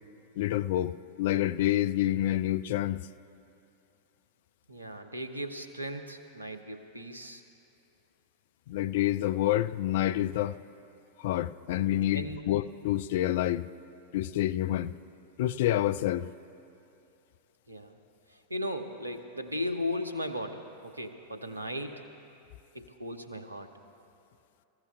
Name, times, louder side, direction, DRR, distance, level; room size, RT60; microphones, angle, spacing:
voice 1, 0.4-3.0 8.7-10.6 11.2-13.7 14.1-14.9 15.4-16.3, left 13 dB, 55° left, 0.3 m, -28 dB
voice 2, 4.7-7.4 12.1-12.4 17.7-18.0 18.3-22.1 22.7-23.7, left 1 dB, 80° right, 0.9 m, -37 dB
24.0 x 15.0 x 2.2 m
figure-of-eight pair, 90°, 0 cm